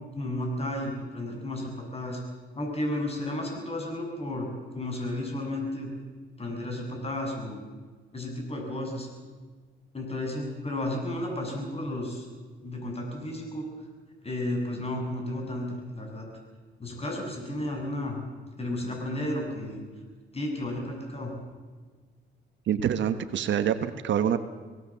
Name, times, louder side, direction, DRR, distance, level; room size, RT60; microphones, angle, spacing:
voice 1, 0.1-2.2 2.5-4.5 4.7-5.9 6.4-7.6 8.1-9.1 9.9-12.3 12.6-13.7 14.2-16.3 16.8-18.2 18.6-19.8 20.3-21.3, left 1 dB, 30° left, 2 dB, 7.6 m, -33 dB
voice 2, 22.7-24.4, right 9 dB, 70° right, 10 dB, 1.3 m, -26 dB
24.5 x 17.5 x 7.3 m, 1.5 s
cardioid pair, 90°, 20 cm